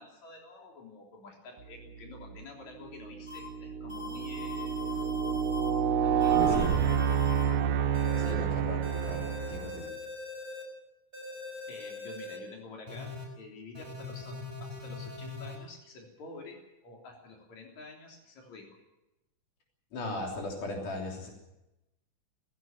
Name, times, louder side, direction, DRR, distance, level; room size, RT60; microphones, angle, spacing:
voice 1, 0.0-5.1 6.0-7.1 11.7-18.8, left 3 dB, 65° left, 0 dB, 4.7 m, -49 dB
sound 1, 2.1-2.4 3.0-9.9, right 8 dB, 80° right, 2.6 m, -28 dB
sound 2, 3.3-3.4 3.9-5.7 6.2-7.4 7.9-8.3 8.8-10.6 11.1-12.4 12.9-13.3 13.7-15.6, left 4 dB, 15° right, 5.6 m, -42 dB
voice 2, 8.2-9.9 19.9-21.3, left 2 dB, 80° left, 0 dB, 4.8 m, -38 dB
18.5 x 16.0 x 8.9 m, 0.95 s
omnidirectional pair, 3.6 m